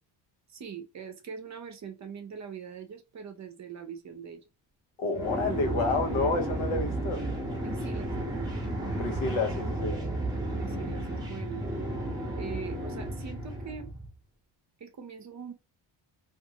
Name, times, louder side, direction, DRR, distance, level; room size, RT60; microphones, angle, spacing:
voice 1, 0.5-4.4 7.6-8.5 10.5-11.7 12.4-13.9 14.8-15.5, right 7 dB, 35° right, 0.6 m, -42 dB
voice 2, 5.0-7.2 9.0-10.0, left 3 dB, 75° left, 0.9 m, -29 dB
sound 1, 5.1-14.1, right 1 dB, 10° right, 0.9 m, -33 dB
2.5 x 2.5 x 2.8 m
cardioid pair, 85°, 48 cm